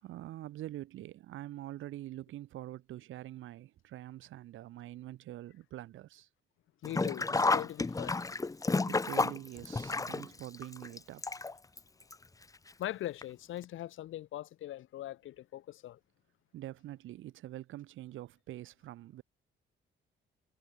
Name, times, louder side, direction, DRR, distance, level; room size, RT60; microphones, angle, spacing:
voice 1, 0.0-6.3 8.9-11.4 16.5-19.2, right 14 dB, 85° right, 2.8 m, -45 dB
voice 2, 6.8-8.2 12.8-16.0, left 13 dB, 80° left, 4.0 m, -41 dB
Sink (filling or washing), 6.8-11.8 12.1-12.2 13.2-13.3 13.6-13.7, left 3 dB, 15° left, 0.8 m, -31 dB
cardioid pair, 90°, 20 cm